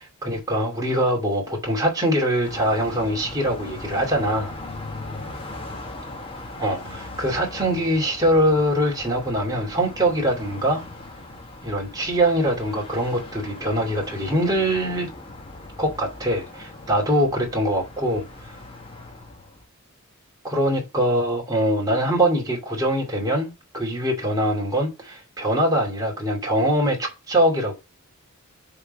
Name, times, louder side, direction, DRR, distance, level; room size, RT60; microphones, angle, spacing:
voice 1, 0.0-4.6 6.6-10.8 11.6-15.1 15.8-18.6 20.4-27.7, right 1 dB, 15° right, 2.5 m, -23 dB
Car passing by, 2.4-19.6, left 2 dB, 25° left, 1.2 m, -39 dB
6.7 x 3.9 x 5.3 m
head